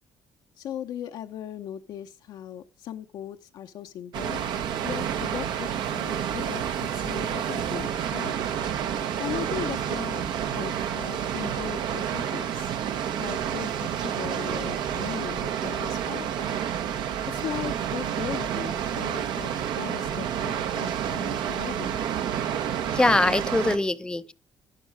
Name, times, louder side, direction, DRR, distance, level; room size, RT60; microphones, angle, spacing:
voice 1, 0.6-4.4 4.8-8.4 9.2-10.2 10.6-12.7 13.2-16.6 17.3-22.0, left 10 dB, 65° left, 0.7 m, -38 dB
Water, 4.1-23.8, right 9 dB, 75° right, 1.2 m, -29 dB
voice 2, 22.9-24.3, left 2 dB, 10° left, 0.5 m, -23 dB
11.0 x 10.5 x 6.2 m
cardioid pair, 125°, 8 cm